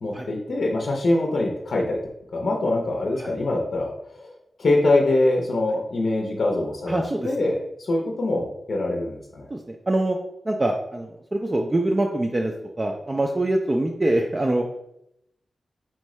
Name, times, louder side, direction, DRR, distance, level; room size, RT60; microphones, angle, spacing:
voice 1, 0.0-2.0 2.3-9.5, left 2 dB, 65° left, 0 dB, 0.6 m, -24 dB
voice 2, 6.9-7.3 9.5-10.2 10.4-14.6, right 1 dB, 20° right, 2 dB, 0.3 m, -24 dB
4.4 x 3.6 x 3.1 m, 0.80 s
wide cardioid pair, 170°, 0 cm